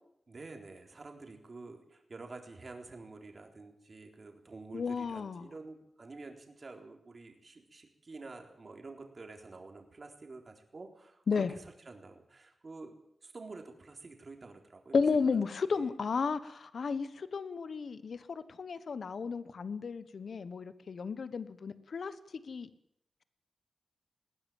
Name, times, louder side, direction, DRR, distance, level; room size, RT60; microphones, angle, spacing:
voice 1, 0.3-15.0 15.7-15.9, right 3 dB, 40° right, 3 dB, 3.9 m, -49 dB
voice 2, 4.7-5.5 11.3-11.5 14.9-22.1 22.5-22.7, left 5 dB, 70° left, 14 dB, 1.3 m, -33 dB
20.5 x 16.0 x 9.1 m, 0.76 s
wide cardioid pair, 105°, 0 cm